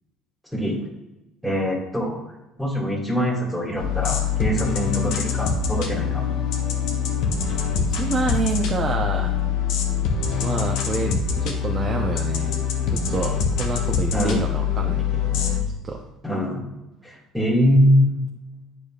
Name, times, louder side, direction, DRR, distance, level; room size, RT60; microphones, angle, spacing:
voice 1, 1.4-2.2 2.6-6.2 14.1-14.4 16.2-16.7 17.0-18.1, equal, 5° right, -5 dB, 2.1 m, -23 dB
sound 1, 3.7-15.6, left 7 dB, 65° left, 1.1 m, -24 dB
voice 2, 7.8-9.3 10.4-12.6 12.9-15.6 15.8-16.1, right 4 dB, 35° right, 1 dB, 0.8 m, -28 dB
9.6 x 4.9 x 2.5 m, 0.98 s
hypercardioid pair, 60°, 0 cm